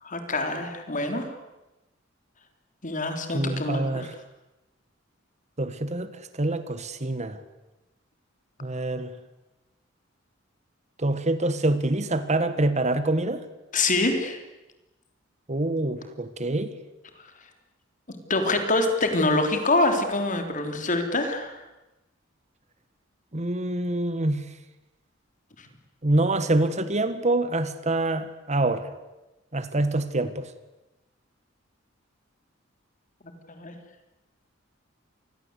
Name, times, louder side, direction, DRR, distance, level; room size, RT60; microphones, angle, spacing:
voice 1, 0.0-1.4 2.8-4.1 13.7-14.4 17.2-17.3 18.1-21.6 33.5-33.8, left 2 dB, 40° left, 6 dB, 3.9 m, -25 dB
voice 2, 3.3-4.1 5.6-7.4 8.6-9.1 11.0-13.4 15.5-16.7 23.3-24.4 26.0-28.9 29.5-30.5, right 2 dB, 35° right, 12 dB, 1.5 m, -26 dB
27.5 x 21.5 x 8.3 m, 1.0 s
head